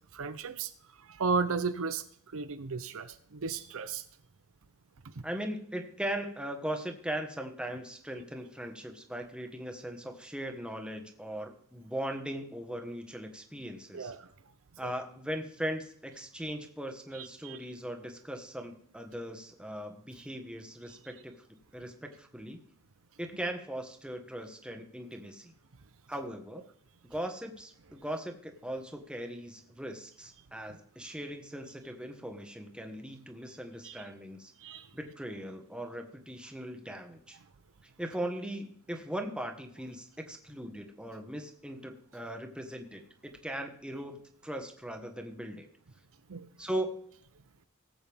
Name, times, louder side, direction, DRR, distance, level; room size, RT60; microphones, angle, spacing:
voice 1, 0.1-0.7 1.1-2.0 2.3-4.0 13.9-14.3 14.8-14.9 17.1-17.6 30.7-30.8 33.8-34.0 34.6-34.9 46.3-46.5, right 5 dB, 65° right, 10 dB, 0.7 m, -34 dB
voice 2, 5.2-14.1 14.8-21.3 21.7-22.6 23.2-25.5 26.1-26.6 27.1-34.5 34.9-37.4 38.0-45.7 46.6-47.1, right 1 dB, 5° right, 4 dB, 1.4 m, -39 dB
19.0 x 8.0 x 3.5 m, 0.65 s
head